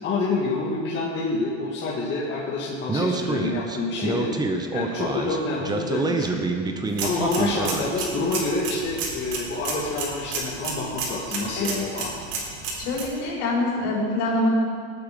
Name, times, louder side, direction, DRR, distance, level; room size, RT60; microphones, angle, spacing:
voice 1, 0.0-4.3 4.7-6.4 7.0-12.1, left 3 dB, 30° left, -5 dB, 1.9 m, -27 dB
Speech, 2.9-8.1, right 3 dB, 10° right, 0.8 m, -27 dB
sound 1, 6.9-13.0, right 4 dB, 80° right, 4.2 m, -32 dB
voice 2, 12.8-14.5, left 2 dB, 60° left, -3 dB, 4.6 m, -25 dB
19.5 x 9.0 x 5.2 m, 2.1 s
supercardioid pair, 145°, 37 cm